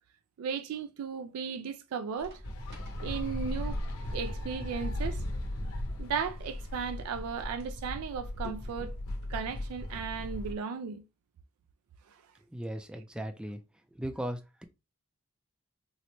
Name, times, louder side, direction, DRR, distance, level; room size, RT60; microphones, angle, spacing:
voice 1, 0.4-2.4 3.0-3.8 4.1-5.2 6.0-9.0 9.3-11.0, right 6 dB, 90° right, 0.3 m, -36 dB
sound 1, 2.2-9.1, equal, 50° right, 1.0 m, -46 dB
sound 2, 2.4-10.5, left 1 dB, 80° left, 0.8 m, -37 dB
voice 2, 12.5-13.6 13.9-14.6, right 1 dB, 5° right, 0.3 m, -37 dB
3.9 x 2.1 x 2.9 m
head